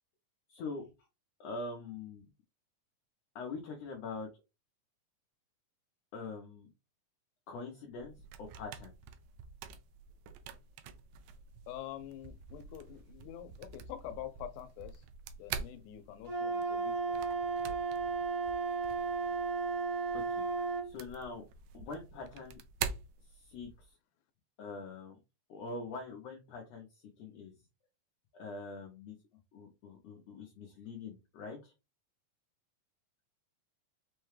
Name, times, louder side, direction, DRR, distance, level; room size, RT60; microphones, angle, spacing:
voice 1, 0.5-0.9 1.4-2.2 3.3-4.3 6.1-6.7 7.5-8.9 20.1-21.5 21.7-22.6 23.2-24.0 24.6-25.2 25.5-27.5 28.3-29.2 29.5-31.7, left 3 dB, 75° left, 1.6 m, -44 dB
sound 1, 7.9-23.9, right 7 dB, 85° right, 2.0 m, -46 dB
voice 2, 11.7-15.0 15.4-18.2, left 12 dB, 90° left, 2.1 m, -47 dB
Wind instrument woodwind instrument, 16.3-20.9, right 4 dB, 55° right, 1.0 m, -34 dB
5.6 x 2.2 x 3.1 m
omnidirectional pair, 3.5 m